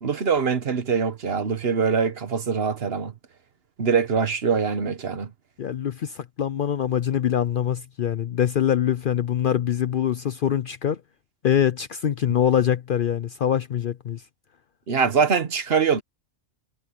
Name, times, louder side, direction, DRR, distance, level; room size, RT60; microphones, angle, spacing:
voice 1, 0.0-3.1 3.8-5.3 14.9-16.0, right 6 dB, 55° right, 1.3 m, -23 dB
voice 2, 5.6-11.0 11.4-14.2, left 9 dB, 55° left, 0.6 m, -24 dB
omnidirectional pair, 1.2 m